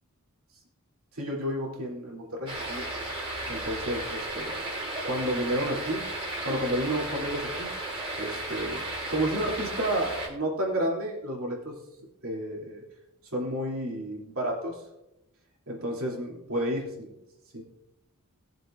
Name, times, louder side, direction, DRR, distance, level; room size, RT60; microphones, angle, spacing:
voice 1, 1.1-2.8 3.5-4.6 5.0-6.0 6.4-7.7 8.2-8.8 9.1-11.7 12.2-12.8 13.3-14.8 15.7-17.1 17.5-17.6, equal, 65° right, -2 dB, 3.0 m, -31 dB
sound 1, 2.5-10.3, right 1 dB, 25° right, 2.9 m, -34 dB
19.0 x 7.6 x 2.6 m, 0.88 s
head